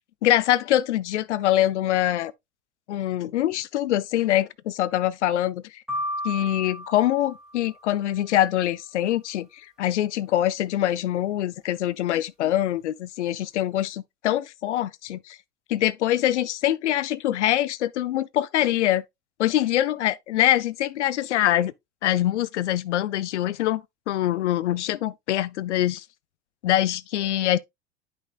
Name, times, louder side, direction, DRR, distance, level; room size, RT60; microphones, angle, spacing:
voice 1, 0.2-2.3 2.9-5.8 6.2-15.4 15.7-19.0 19.4-21.7 22.0-26.0 26.6-27.6, left 13 dB, 80° left, 0.6 m, -24 dB
sound 1, 5.9-8.0, equal, ahead, 2.3 m, -34 dB
9.7 x 5.4 x 2.3 m
hypercardioid pair, 75°, 35 cm